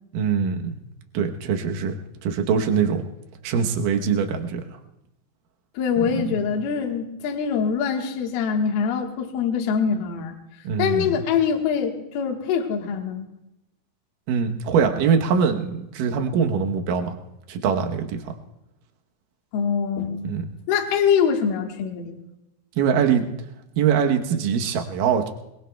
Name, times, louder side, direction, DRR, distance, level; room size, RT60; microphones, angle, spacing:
voice 1, 0.1-0.8 1.1-2.0 2.2-3.0 3.4-4.6 6.0-6.4 10.6-11.1 14.3-17.2 17.5-18.2 20.2-20.5 22.8-23.3 23.8-25.3, right 6 dB, 75° right, 3 dB, 2.0 m, -23 dB
voice 2, 5.7-10.4 10.8-13.3 19.5-20.3 20.7-22.2, left 7 dB, 65° left, 2 dB, 3.0 m, -24 dB
24.0 x 22.0 x 2.3 m, 0.89 s
omnidirectional pair, 5.2 m